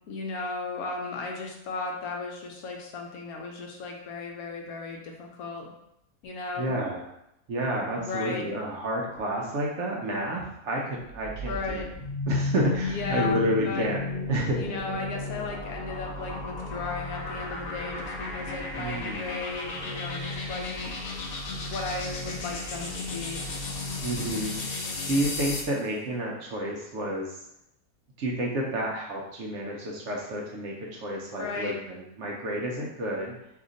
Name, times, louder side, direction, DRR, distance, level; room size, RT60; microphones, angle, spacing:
voice 1, 0.1-5.7 6.2-6.7 8.0-8.5 11.5-11.9 12.9-13.9 14.6-20.9 21.5-23.5 31.4-31.8, left 3 dB, 80° left, 1 dB, 1.1 m, -35 dB
voice 2, 6.6-7.1 7.5-11.9 12.3-14.0 14.3-14.6 18.8-19.2 24.0-27.4 28.2-33.3, right 1 dB, 65° right, -2 dB, 0.8 m, -30 dB
sound 1, 11.1-25.8, left 3 dB, 60° left, 0.6 m, -34 dB
2.8 x 2.5 x 3.8 m, 0.82 s
omnidirectional pair, 1.6 m